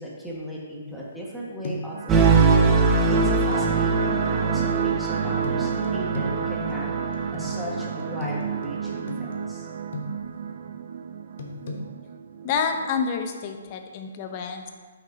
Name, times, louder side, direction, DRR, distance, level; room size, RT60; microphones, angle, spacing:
voice 1, 0.0-2.7 3.1-6.9 7.3-9.7, equal, ahead, -6 dB, 1.7 m, -37 dB
sound 1, 0.9-1.4 1.6-2.1 3.5-3.7 5.4-10.4 11.4-11.8, left 1 dB, 60° left, 1.2 m, -37 dB
sound 2, 1.9-12.9, right 7 dB, 55° right, 0.5 m, -31 dB
sound 3, 2.1-8.9, right 4 dB, 20° right, 0.9 m, -23 dB
voice 2, 12.4-14.7, left 6 dB, 35° left, 5 dB, 0.9 m, -28 dB
9.3 x 6.6 x 2.9 m, 1.5 s
figure-of-eight pair, 135°, 0 cm